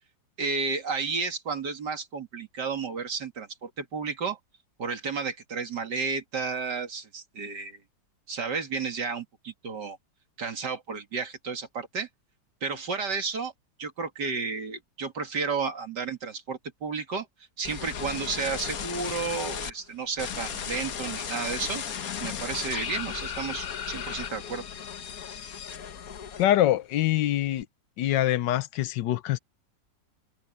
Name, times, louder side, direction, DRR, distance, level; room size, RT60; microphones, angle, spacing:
voice 1, 0.4-4.4 4.8-7.8 8.3-10.0 10.4-12.1 12.6-13.5 13.8-17.3 17.6-21.8 22.2-24.6, right 5 dB, 70° right, 2.9 m, -32 dB
sound 1, 17.6-19.7 20.2-26.7 27.0-27.6, left 7 dB, 55° left, 1.5 m, -35 dB
voice 2, 26.4-27.6 28.0-29.4, left 13 dB, 80° left, 1.3 m, -24 dB
omnidirectional pair, 1.9 m